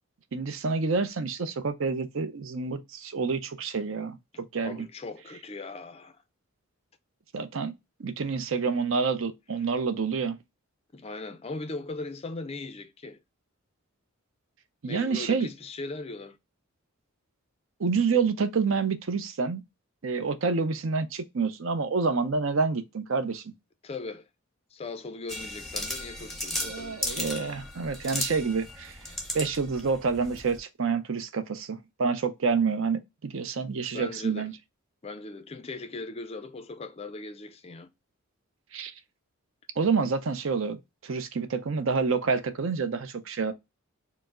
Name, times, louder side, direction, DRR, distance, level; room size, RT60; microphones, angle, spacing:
voice 1, 0.3-4.8 7.3-7.7 8.0-10.4 14.8-15.5 17.8-19.6 20.0-23.4 26.6-29.0 29.3-34.5 38.7-38.9 39.8-43.5, right 4 dB, 65° right, 0.5 m, -28 dB
voice 2, 4.6-6.2 10.9-13.2 14.9-16.4 23.8-24.3 24.7-27.0 33.9-34.5 35.0-37.9, left 3 dB, 25° left, 0.4 m, -39 dB
sound 1, 25.3-30.6, left 1 dB, ahead, 0.7 m, -35 dB
4.6 x 2.0 x 3.6 m
head